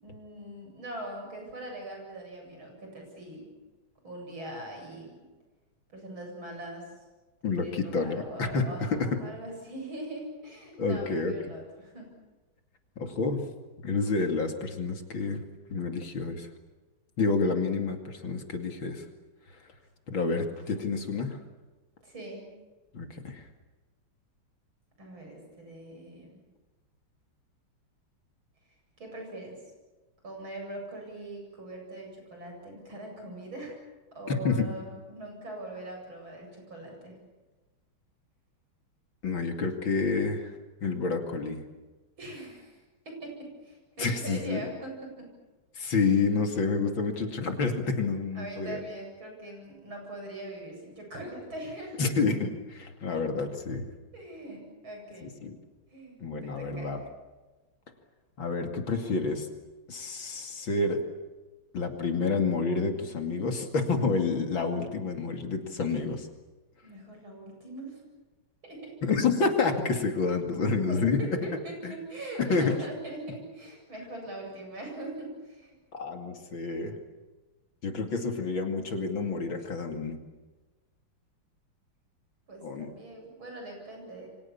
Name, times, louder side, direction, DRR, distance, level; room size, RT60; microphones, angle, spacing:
voice 1, 0.0-3.5 4.0-5.3 5.9-7.0 7.6-12.1 22.0-22.5 25.0-26.4 29.0-29.6 30.2-33.8 34.1-37.1 42.2-45.3 45.8-46.0 48.3-52.0 54.1-55.3 55.9-57.0 66.8-68.0 68.6-69.0 71.2-75.8 82.5-84.3, right 1 dB, 70° right, 2 dB, 8.9 m, -42 dB
voice 2, 7.4-9.1 10.8-11.3 13.0-13.4 13.8-15.4 15.7-16.5 17.2-19.0 20.1-21.4 22.9-23.4 34.3-34.7 39.2-40.5 40.8-41.6 44.0-44.6 45.8-48.8 52.0-53.9 55.2-55.6 56.2-57.0 58.4-59.5 59.9-61.0 61.7-66.3 69.0-71.2 71.8-71.9 72.4-72.8 75.9-76.9 77.8-80.2 82.6-82.9, left 4 dB, 65° left, 4 dB, 3.3 m, -29 dB
28.5 x 24.5 x 7.3 m, 1.2 s
omnidirectional pair, 2.3 m